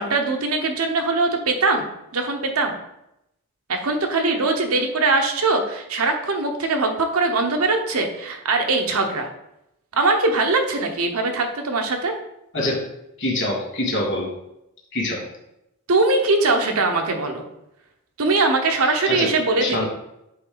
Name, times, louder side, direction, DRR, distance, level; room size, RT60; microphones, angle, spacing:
voice 1, 0.0-2.7 3.7-9.3 9.9-12.1 15.9-17.4 18.2-19.8, right 3 dB, 80° right, 4 dB, 1.0 m, -21 dB
voice 2, 13.2-14.3 14.9-15.2 19.1-19.3 19.6-19.9, left 1 dB, 55° left, -2 dB, 2.0 m, -24 dB
7.7 x 3.9 x 4.0 m, 0.84 s
head